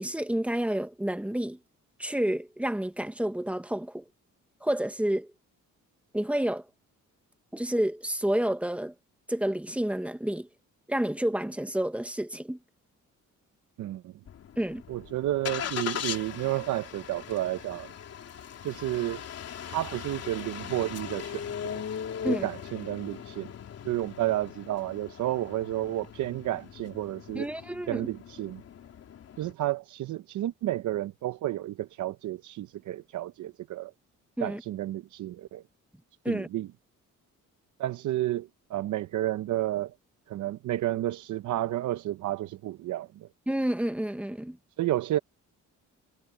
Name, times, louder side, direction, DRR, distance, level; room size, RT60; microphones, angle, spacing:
voice 1, 0.0-1.6 2.0-4.0 4.6-5.3 6.1-6.7 7.5-8.9 9.3-10.5 10.9-12.6 14.6-14.8 22.2-22.5 27.3-28.1 34.4-34.6 36.2-36.5 43.5-44.6, right 1 dB, 5° right, 0.9 m, -29 dB
voice 2, 13.8-14.1 14.9-17.9 18.6-19.2 19.7-21.8 22.3-23.5 23.8-27.5 27.9-28.6 29.4-33.9 34.4-35.6 36.3-36.7 37.8-39.9 40.3-43.3 44.8-45.2, right 14 dB, 65° right, 0.6 m, -31 dB
Engine starting, 14.3-29.5, left 8 dB, 50° left, 3.4 m, -39 dB
cardioid pair, 175°, 32 cm